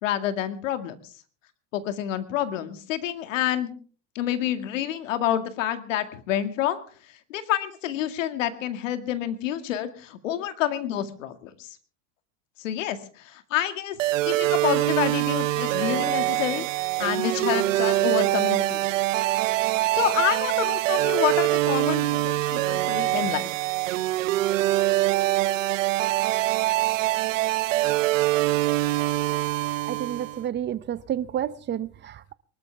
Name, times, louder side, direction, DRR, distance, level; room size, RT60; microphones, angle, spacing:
voice 1, 0.0-1.0 1.7-3.7 4.2-6.8 7.3-11.8 12.6-14.0 14.2-16.7 17.0-19.0 19.9-23.5, left 11 dB, 85° left, 2.1 m, -28 dB
sound 1, 14.0-30.4, right 17 dB, 85° right, 0.8 m, -24 dB
voice 2, 29.9-32.3, right 10 dB, 30° right, 0.7 m, -30 dB
23.5 x 13.0 x 3.5 m
supercardioid pair, 115°, 37 cm